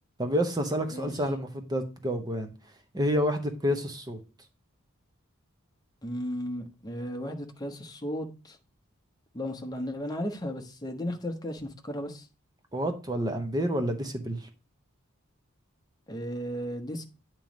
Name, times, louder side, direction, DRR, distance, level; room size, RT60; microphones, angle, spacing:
voice 1, 0.2-2.5 2.9-4.2 12.7-14.5, equal, 20° right, 0.8 m, -29 dB
voice 2, 6.0-8.6 9.3-12.3 16.1-17.0, equal, 20° left, 0.9 m, -35 dB
8.9 x 3.0 x 5.1 m
head